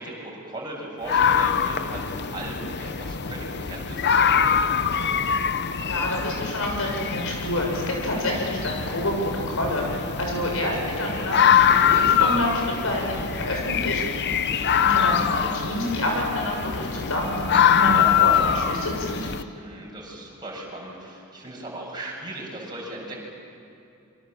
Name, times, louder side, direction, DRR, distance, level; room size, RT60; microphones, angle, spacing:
voice 1, 0.0-4.6 14.3-14.8 19.5-23.2, right 1 dB, 20° right, -3 dB, 7.3 m, -38 dB
sound 1, 1.1-19.4, left 8 dB, 55° left, 0.8 m, -23 dB
voice 2, 5.9-14.2 14.5-19.3, left 1 dB, 70° left, 0 dB, 7.3 m, -28 dB
27.0 x 24.5 x 7.7 m, 2.6 s
head